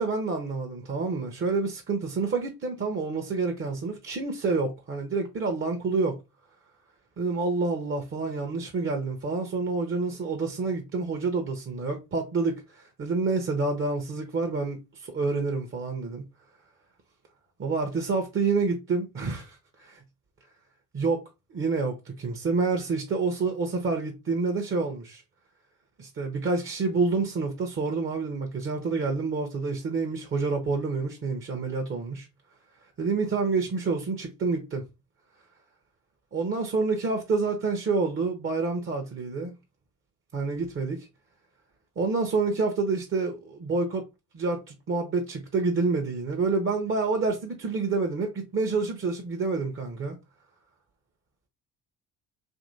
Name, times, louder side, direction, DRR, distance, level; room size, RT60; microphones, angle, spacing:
voice 1, 0.0-6.2 7.2-16.2 17.6-20.0 20.9-21.2 21.5-25.2 26.0-32.3 33.0-34.8 36.3-39.5 40.3-41.1 42.0-44.0 44.3-50.2, right 4 dB, 30° right, 0.7 m, -28 dB
2.8 x 2.6 x 2.6 m
hypercardioid pair, 50°, 42 cm